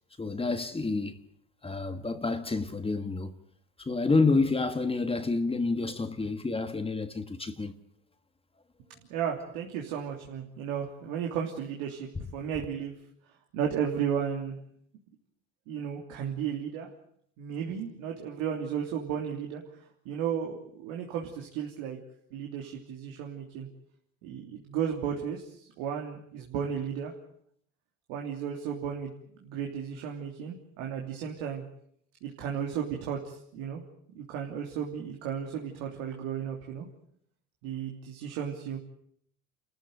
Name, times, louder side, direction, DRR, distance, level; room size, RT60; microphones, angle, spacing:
voice 1, 0.2-1.2 1.6-3.3 3.8-7.8, left 3 dB, 15° left, 1.6 m, -28 dB
voice 2, 9.1-12.9 13.5-14.6 15.7-16.9 17.4-22.0 22.3-23.7 24.2-27.1 28.1-29.1 29.4-31.6 32.2-33.8 34.1-36.9 37.6-38.8, right 8 dB, 80° right, 3.2 m, -34 dB
28.5 x 14.0 x 9.3 m
supercardioid pair, 95°, 34 cm